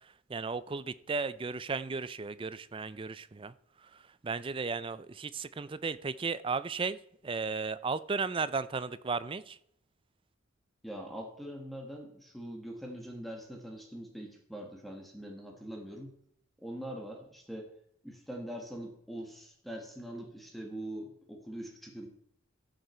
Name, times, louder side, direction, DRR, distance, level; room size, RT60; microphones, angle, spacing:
voice 1, 0.3-3.5 3.8-7.0 7.2-9.6, right 4 dB, 25° right, 16 dB, 0.4 m, -35 dB
voice 2, 10.8-16.1 16.6-17.7 18.0-22.1, right 1 dB, ahead, 1 dB, 1.5 m, -43 dB
14.0 x 6.7 x 4.4 m, 0.68 s
head